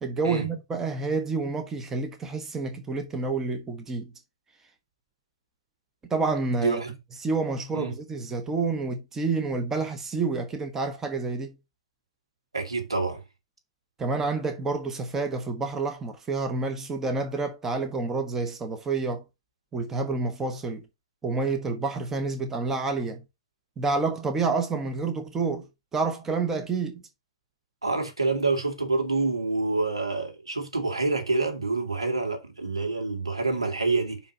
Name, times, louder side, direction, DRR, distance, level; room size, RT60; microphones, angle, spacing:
voice 1, 0.0-4.1 6.1-6.8 7.2-11.5 14.0-19.2 19.7-20.8 21.2-23.2 23.8-25.7 25.9-27.0, right 4 dB, 15° right, 1.3 m, -28 dB
voice 2, 6.5-6.9 7.7-7.9 12.5-13.2 27.8-34.2, right 3 dB, 80° right, 2.9 m, -27 dB
5.7 x 5.2 x 5.3 m
figure-of-eight pair, 110°, 3 cm